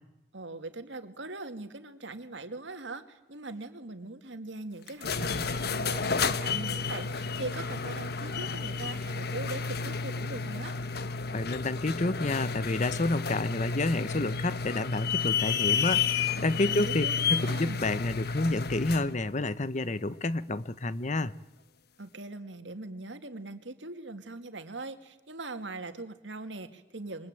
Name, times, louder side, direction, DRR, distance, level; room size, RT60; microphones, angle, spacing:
voice 1, 0.3-10.7 16.7-17.9 22.0-27.3, right 2 dB, 80° right, 2.3 m, -41 dB
sound 1, 4.9-19.1, left 5 dB, 55° left, 1.2 m, -31 dB
voice 2, 11.3-21.3, left 2 dB, 40° left, 0.9 m, -29 dB
28.0 x 23.5 x 9.0 m
head